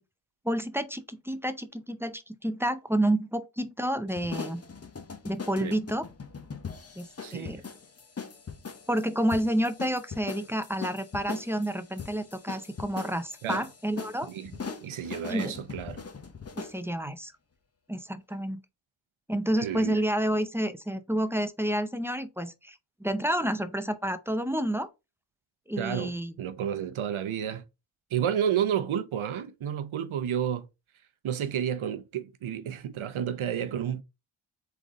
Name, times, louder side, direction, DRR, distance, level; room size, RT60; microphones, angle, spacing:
voice 1, 0.4-4.6 5.2-6.0 7.0-7.6 8.9-14.3 15.3-15.5 16.6-17.3 17.9-18.6 19.3-24.9 25.7-26.3, right 1 dB, 5° right, 0.5 m, -29 dB
sound 1, 4.1-16.8, left 5 dB, 30° left, 0.7 m, -41 dB
voice 2, 7.2-7.6 13.4-13.7 14.2-16.0 19.6-20.0 25.8-26.1 26.4-27.6 28.1-30.7 31.2-34.0, right 9 dB, 75° right, 0.7 m, -31 dB
3.9 x 3.4 x 3.6 m
wide cardioid pair, 85°, 49 cm